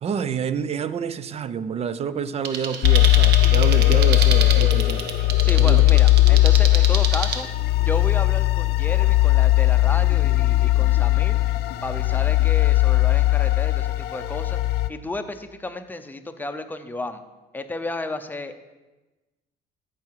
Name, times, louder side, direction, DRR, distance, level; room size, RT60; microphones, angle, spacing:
voice 1, 0.0-5.1 5.6-5.8, right 7 dB, 40° right, 14 dB, 0.5 m, -28 dB
sound 1, 2.4-7.4, right 7 dB, 80° right, 0.9 m, -29 dB
sound 2, 2.8-14.9, left 18 dB, 75° left, 0.5 m, -18 dB
voice 2, 5.4-7.5 7.9-11.4 11.8-14.6 14.9-17.2 17.5-18.6, left 2 dB, 10° left, 8 dB, 0.7 m, -32 dB
14.0 x 4.9 x 4.6 m, 1.1 s
cardioid pair, 110°, 17 cm